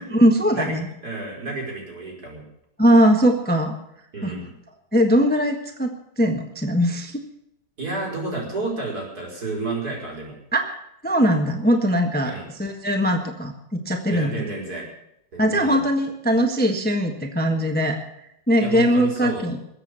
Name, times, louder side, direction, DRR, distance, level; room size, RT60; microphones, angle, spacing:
voice 1, 0.0-0.9 2.8-3.7 4.2-4.3 4.9-7.2 10.5-10.8 11.0-14.3 15.4-18.0 18.5-19.6, equal, 5° left, 4 dB, 1.3 m, -20 dB
voice 2, 1.0-2.4 4.1-4.5 7.8-10.4 12.2-12.5 14.1-14.8 15.3-15.8 18.6-19.5, right 2 dB, 55° right, -2 dB, 5.8 m, -31 dB
21.5 x 8.3 x 7.0 m, 0.80 s
omnidirectional pair, 1.9 m